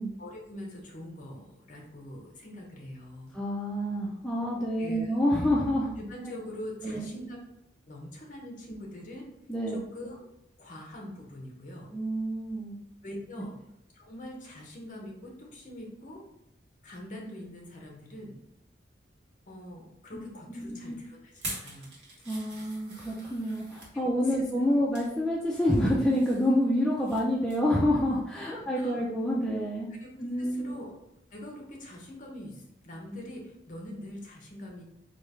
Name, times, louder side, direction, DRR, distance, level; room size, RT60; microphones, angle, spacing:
voice 1, 0.2-3.3 4.8-5.1 6.0-7.4 7.9-9.2 9.7-10.2 10.6-11.9 13.0-13.5 13.9-16.2 16.8-18.4 19.5-21.9 23.9-24.4 24.8-24.9 28.5-29.1 29.9-30.1 30.4-31.0 31.3-34.8, left 1 dB, 45° left, -1 dB, 0.7 m, -43 dB
voice 2, 3.3-5.9 6.8-7.1 9.5-9.8 11.9-12.8 20.1-20.2 20.6-21.0 22.3-29.9 30.2-30.7, equal, 5° left, -6 dB, 0.3 m, -28 dB
sound 1, 21.3-23.9 24.5-25.1 25.5-27.2 27.5-27.7 28.1-28.2, right 2 dB, 70° right, 1.0 m, -44 dB
3.1 x 2.3 x 3.2 m, 0.81 s
head